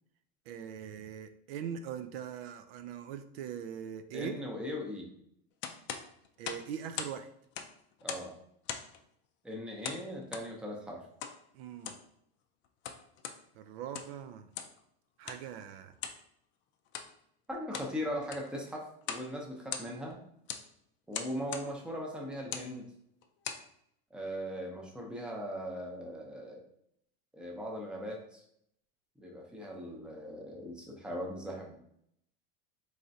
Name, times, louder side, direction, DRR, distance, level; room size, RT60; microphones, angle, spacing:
voice 1, 0.5-4.3 6.4-7.3 11.5-11.9 13.6-14.5 15.2-15.9, right 8 dB, 75° right, 9 dB, 0.4 m, -41 dB
voice 2, 4.1-5.1 8.0-8.3 9.4-11.0 17.5-20.2 21.1-22.8 24.1-26.6 27.3-28.4 29.2-31.7, equal, 5° right, -1 dB, 0.6 m, -39 dB
sound 1, 5.6-7.2 7.4-8.3 8.7-9.0 9.8-10.5 11.2-11.4 11.7-12.1 12.6-13.4 13.8-14.2 14.5-14.8 15.3-15.4 16.0-16.2 16.9-17.1 17.5-17.9 18.2-18.5 19.0-19.3 19.6-20.1 20.5-20.7 21.1-21.7 22.4-22.7 23.2-23.7, left 8 dB, 40° left, 0.4 m, -40 dB
3.6 x 3.2 x 2.7 m, 0.72 s
supercardioid pair, 135°, 30 cm